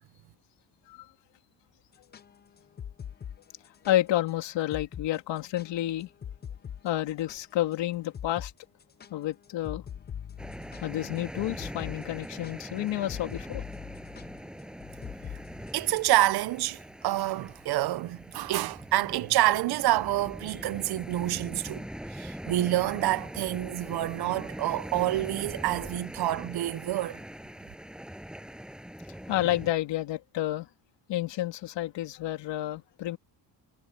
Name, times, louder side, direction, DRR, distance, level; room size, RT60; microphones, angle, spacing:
sound 1, 1.9-4.0 4.3-4.4 4.7-5.1 5.4-7.7 8.1-8.5 8.8-16.1, left 8 dB, 25° left, 0.5 m, -42 dB
voice 1, 3.9-6.1 6.8-8.5 9.1-9.8 10.8-13.6 29.3-30.7 31.1-33.2, left 14 dB, 80° left, 2.6 m, -30 dB
sound 2, 10.4-29.7, equal, ahead, 7.2 m, -42 dB
voice 2, 15.7-21.8 22.1-27.2, right 15 dB, 60° right, 0.7 m, -27 dB
cardioid pair, 170°, 42 cm